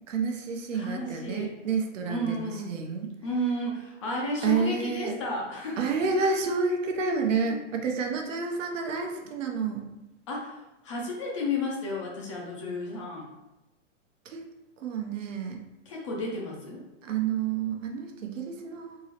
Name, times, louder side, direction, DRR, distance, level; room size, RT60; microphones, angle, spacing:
voice 1, 0.1-3.1 4.4-5.1 5.8-9.8 14.2-14.5 14.8-15.6 17.0-19.0, right 5 dB, 75° right, 3 dB, 0.8 m, -29 dB
voice 2, 0.7-1.5 2.1-2.7 3.2-5.8 7.5-7.6 10.3-13.3 15.9-16.8, left 1 dB, 25° left, -1 dB, 0.4 m, -32 dB
3.8 x 2.9 x 2.9 m, 0.97 s
hypercardioid pair, 155°, 38 cm